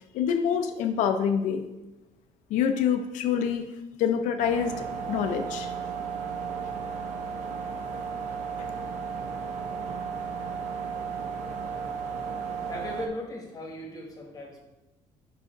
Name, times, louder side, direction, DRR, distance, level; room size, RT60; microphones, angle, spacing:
voice 1, 0.1-1.7 2.5-3.7 4.0-4.8 5.1-5.7 8.6-8.7, left 8 dB, 80° left, 6 dB, 0.5 m, -26 dB
sound 1, 4.4-13.1, right 6 dB, 75° right, 0.8 m, -34 dB
voice 2, 12.3-14.6, left 1 dB, 30° left, 0 dB, 1.3 m, -38 dB
5.0 x 4.8 x 5.0 m, 0.99 s
cardioid pair, 125°, 13 cm